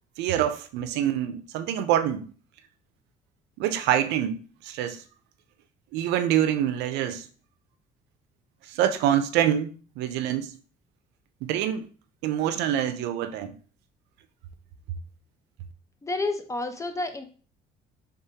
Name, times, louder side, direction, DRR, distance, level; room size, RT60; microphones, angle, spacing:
voice 1, 0.2-2.3 3.6-5.0 5.9-7.3 8.7-10.5 11.4-11.9 12.2-13.5, right 10 dB, 90° right, 0.5 m, -26 dB
voice 2, 16.0-17.2, left 2 dB, 20° left, 0.5 m, -30 dB
3.5 x 3.4 x 2.8 m
cardioid pair, 110°, 17 cm